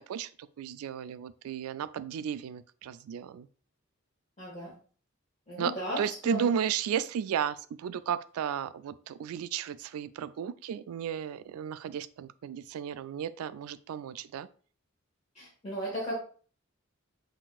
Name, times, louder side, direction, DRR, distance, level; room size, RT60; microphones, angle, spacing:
voice 1, 0.0-3.5 5.6-14.5, right 8 dB, 90° right, 16 dB, 0.3 m, -34 dB
voice 2, 4.4-4.7 5.5-6.5 15.3-16.2, equal, 30° left, -7 dB, 1.4 m, -35 dB
5.8 x 2.7 x 2.3 m, 0.42 s
head